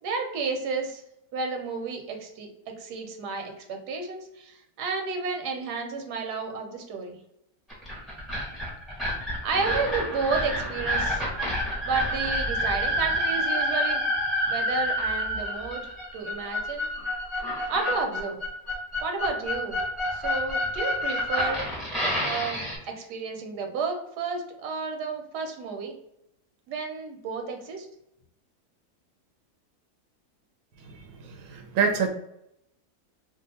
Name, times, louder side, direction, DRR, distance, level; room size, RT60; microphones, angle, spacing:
voice 1, 0.0-1.0 1.3-2.5 2.8-7.2 9.4-11.2 11.8-14.0 14.5-16.9 17.7-18.4 19.0-19.8 20.1-21.8 22.2-25.9 26.7-27.9, right 4 dB, 90° right, 4 dB, 1.3 m, -31 dB
sound 1, 7.7-22.8, equal, ahead, 0.6 m, -28 dB
voice 2, 30.8-32.1, right 6 dB, 70° right, 4 dB, 0.9 m, -27 dB
2.7 x 2.4 x 4.1 m, 0.79 s
omnidirectional pair, 1.7 m